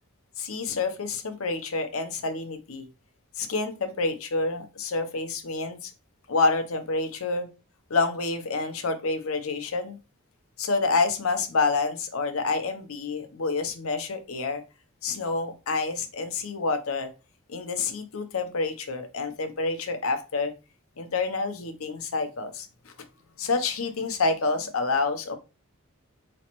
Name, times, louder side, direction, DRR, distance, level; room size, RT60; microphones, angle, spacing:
voice 1, 0.4-2.9 3.4-5.9 6.3-7.5 7.9-10.0 10.6-14.6 15.0-17.1 17.5-20.5 21.0-22.7 23.4-25.4, left 3 dB, 75° left, 7 dB, 0.7 m, -28 dB
4.1 x 3.1 x 3.0 m, 0.30 s
head